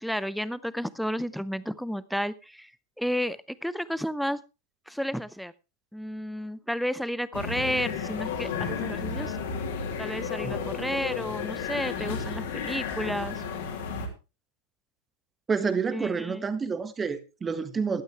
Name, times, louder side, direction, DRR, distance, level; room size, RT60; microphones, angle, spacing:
voice 1, 0.0-2.7 3.0-4.4 4.9-5.5 5.9-9.4 10.0-13.4 15.9-16.4, equal, ahead, 18 dB, 0.6 m, -32 dB
sound 1, 7.3-14.1, left 6 dB, 55° left, 3.1 m, -33 dB
voice 2, 15.5-18.0, right 5 dB, 15° right, 12 dB, 1.4 m, -28 dB
15.0 x 12.0 x 3.4 m, 0.30 s
figure-of-eight pair, 90°, 0 cm